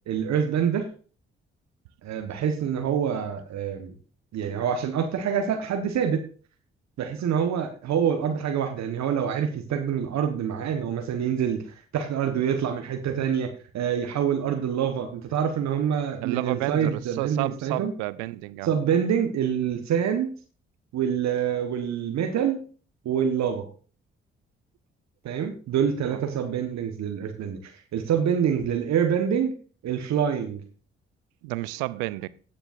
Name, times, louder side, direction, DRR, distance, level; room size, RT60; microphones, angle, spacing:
voice 1, 0.1-0.9 2.0-3.9 4.3-6.2 7.0-11.6 11.9-17.9 18.6-20.3 20.9-22.6 23.0-23.7 25.2-29.5 29.8-30.6, right 8 dB, 65° right, 1.2 m, -26 dB
voice 2, 16.2-18.7 26.1-26.2 31.4-32.3, right 20 dB, 80° right, 0.5 m, -31 dB
15.0 x 6.8 x 2.5 m
hypercardioid pair, 40°, 29 cm